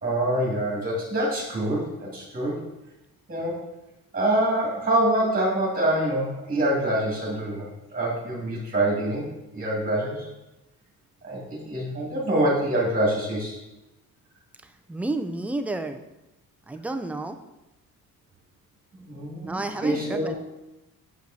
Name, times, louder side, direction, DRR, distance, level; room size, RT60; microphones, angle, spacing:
voice 1, 0.0-2.6 3.3-3.6 4.1-9.3 9.5-10.3 11.2-13.6 19.1-20.3, right 1 dB, 25° right, -3 dB, 2.0 m, -25 dB
voice 2, 14.9-16.0 16.7-17.4 19.4-20.3, right 2 dB, 5° right, 7 dB, 0.4 m, -30 dB
7.7 x 5.4 x 2.7 m, 0.94 s
cardioid pair, 105°, 35 cm